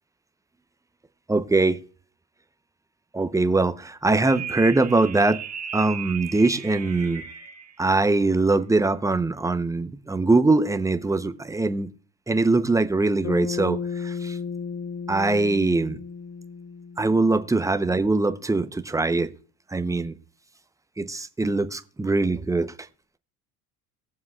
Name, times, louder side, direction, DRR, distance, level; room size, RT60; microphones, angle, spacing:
voice 1, 1.3-1.8 3.1-5.4 5.7-7.2 7.8-11.9 12.3-14.4 15.1-16.0 17.0-19.3 19.7-20.2 21.0-22.7, right 3 dB, 10° right, 0.7 m, -22 dB
sound 1, 4.3-7.7, right 8 dB, 35° right, 1.5 m, -36 dB
Bass guitar, 13.2-17.7, left 6 dB, 40° left, 1.3 m, -34 dB
20.0 x 7.2 x 2.4 m
hypercardioid pair, 70°, 42 cm